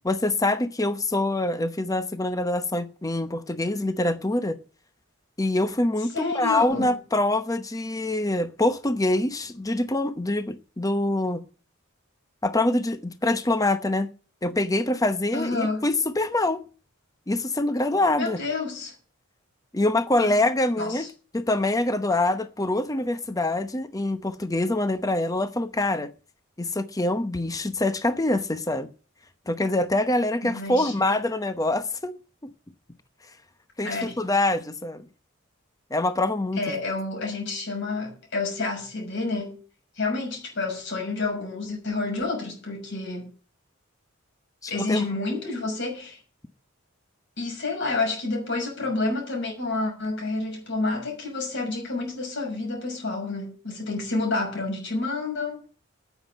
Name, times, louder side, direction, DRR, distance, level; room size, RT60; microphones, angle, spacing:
voice 1, 0.0-4.6 5.4-11.4 12.4-14.1 14.4-16.6 17.3-18.4 19.7-21.1 21.3-26.1 26.6-28.9 29.5-32.1 32.4-32.5 33.8-35.0 35.9-36.7 44.6-45.1, left 2 dB, 15° left, 0.8 m, -25 dB
voice 2, 6.1-6.9 15.3-15.9 18.2-18.9 20.2-20.4 20.8-21.1 30.4-31.0 33.8-34.2 36.6-39.6 40.0-43.2 44.7-46.2 47.4-55.6, left 3 dB, 60° left, 6.3 m, -29 dB
9.4 x 8.2 x 9.3 m
head